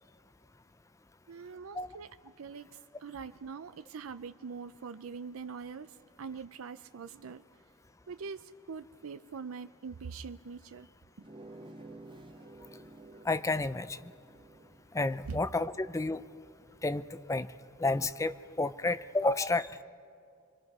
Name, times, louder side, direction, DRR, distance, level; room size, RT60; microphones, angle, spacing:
voice 1, 1.3-2.7 3.0-7.4 8.1-10.9 11.2-11.3 15.3-15.4, right 5 dB, 80° right, 11 dB, 0.5 m, -43 dB
sound 1, 11.2-16.5, right 2 dB, 25° right, 0.7 m, -52 dB
voice 2, 13.2-14.0 14.9-16.2 16.8-17.5 17.8-19.7, left 2 dB, 15° left, 13 dB, 0.5 m, -30 dB
28.5 x 23.5 x 5.4 m, 2.4 s
head